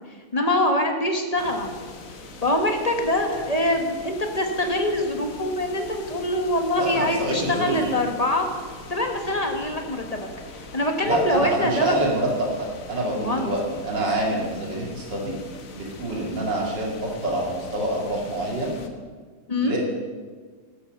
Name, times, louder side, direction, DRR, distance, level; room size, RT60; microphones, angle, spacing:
voice 1, 0.3-1.8 2.4-8.5 8.9-12.1 13.1-13.5 19.5-19.8, left 1 dB, 25° left, 4 dB, 0.9 m, -24 dB
sound 1, 1.4-18.9, left 3 dB, 50° left, 1.2 m, -42 dB
voice 2, 6.7-8.0 11.0-15.3 15.7-18.7 19.6-19.8, right 1 dB, 55° right, -2 dB, 3.1 m, -26 dB
13.0 x 8.4 x 6.5 m, 1.5 s
omnidirectional pair, 2.4 m